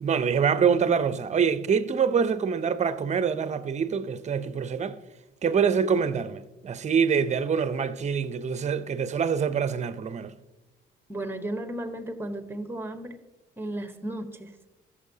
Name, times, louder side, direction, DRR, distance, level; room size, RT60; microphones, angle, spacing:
voice 1, 0.0-5.0 5.4-10.3, right 6 dB, 35° right, 0.6 m, -25 dB
voice 2, 11.1-13.2 13.6-14.5, right 1 dB, 10° right, 1.0 m, -34 dB
13.5 x 7.0 x 2.8 m
cardioid pair, 90°, 20 cm